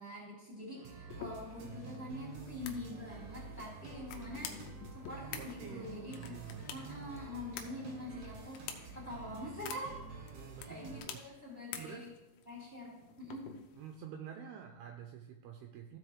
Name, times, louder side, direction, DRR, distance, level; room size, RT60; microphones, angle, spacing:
voice 1, 0.0-4.6 4.9-9.9 10.7-12.0 12.5-13.5, left 1 dB, 20° left, -6 dB, 2.1 m, -45 dB
sound 1, 0.7-11.0, right 4 dB, 65° right, 1.7 m, -49 dB
sound 2, 1.1-14.0, left 9 dB, 80° left, 3.0 m, -50 dB
voice 2, 5.4-6.7 7.3-7.4 10.3-11.3 11.8-12.1 13.7-16.0, right 8 dB, 85° right, 3 dB, 2.3 m, -49 dB
15.0 x 5.6 x 3.2 m, 1.1 s
omnidirectional pair, 5.1 m